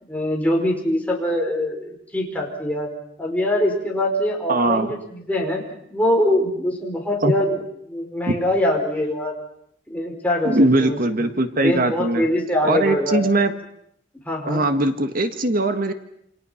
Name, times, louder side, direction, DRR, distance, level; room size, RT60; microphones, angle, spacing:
voice 1, 0.1-2.9 3.2-5.6 5.9-7.6 7.9-9.3 9.9-11.3 11.6-13.3 14.3-14.6, left 1 dB, 10° left, -1 dB, 5.2 m, -23 dB
voice 2, 4.5-4.9 7.2-7.3 8.3-8.4 10.4-12.2 12.6-13.5 14.5-15.9, right 2 dB, 50° right, 7 dB, 1.7 m, -20 dB
28.5 x 26.5 x 5.9 m, 0.70 s
head